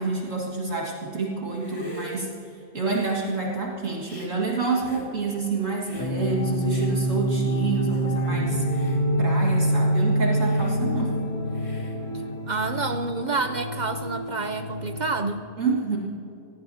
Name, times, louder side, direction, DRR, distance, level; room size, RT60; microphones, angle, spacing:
voice 1, 0.0-8.9 9.2-11.2 15.6-16.0, right 4 dB, 55° right, -3 dB, 2.2 m, -28 dB
Hiss, 1.5-2.2 2.8-3.4 4.0-4.3 4.8-5.1 5.8-6.2 6.7-6.9 7.5-7.6 7.8-8.1 8.6-9.0 9.4-9.8 10.3-10.8 11.5-12.0, right 1 dB, 20° left, 2.4 m, -43 dB
sound 1, 6.0-15.1, right 1 dB, 70° left, 2.6 m, -26 dB
voice 2, 12.5-15.5, right 3 dB, 75° right, 8 dB, 0.4 m, -28 dB
25.5 x 19.0 x 2.8 m, 2.9 s
omnidirectional pair, 1.6 m